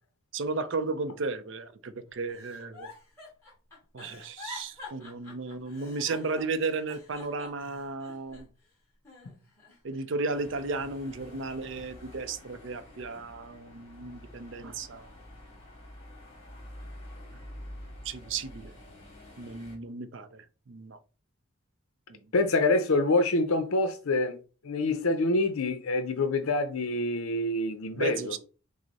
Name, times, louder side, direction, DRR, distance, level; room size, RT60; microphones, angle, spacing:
voice 1, 0.3-2.9 3.9-8.5 9.8-15.1 18.0-18.7 19.4-21.0 22.1-22.2 27.9-28.4, right 3 dB, 55° right, 0.4 m, -34 dB
Giggle, 2.3-8.7 9.0-10.0 10.5-11.6 12.1-12.5, left 3 dB, 10° left, 2.0 m, -48 dB
sound 1, 10.3-19.7, left 1 dB, 30° left, 2.2 m, -48 dB
voice 2, 22.3-24.4 24.6-28.4, left 2 dB, 75° left, 0.5 m, -26 dB
6.1 x 2.0 x 4.0 m
head